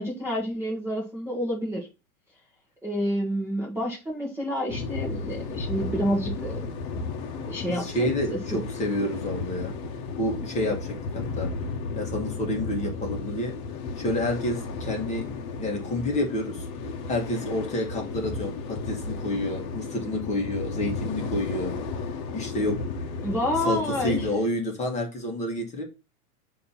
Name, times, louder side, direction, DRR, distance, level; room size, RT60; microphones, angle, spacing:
voice 1, 0.0-1.9 2.8-6.6 7.5-8.6 23.2-24.3, equal, 5° right, 1.0 m, -29 dB
sound 1, 4.7-24.3, left 4 dB, 45° left, 1.0 m, -34 dB
voice 2, 7.8-9.8 10.2-11.5 12.0-13.6 14.0-15.3 15.6-16.7 17.1-21.8 22.3-22.8 23.6-25.8, left 1 dB, 15° left, 1.3 m, -29 dB
6.5 x 2.9 x 5.5 m
supercardioid pair, 155°, 43 cm